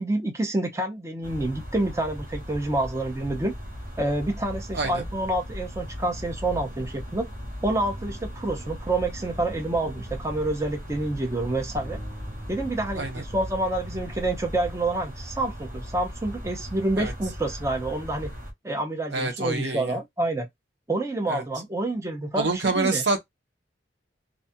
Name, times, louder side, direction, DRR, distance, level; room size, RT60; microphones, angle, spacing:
voice 1, 0.0-3.5 4.0-7.3 7.6-12.0 12.5-18.3 18.6-20.5 20.9-23.0, right 2 dB, 15° right, 0.5 m, -28 dB
sound 1, 1.2-18.5, equal, 50° right, 0.9 m, -38 dB
voice 2, 4.7-5.0 13.0-13.2 17.0-17.1 19.1-20.0 21.3-21.4 22.3-23.2, right 3 dB, 75° right, 0.8 m, -27 dB
sound 2, 11.7-18.0, equal, 30° right, 1.2 m, -48 dB
2.5 x 2.3 x 2.7 m
head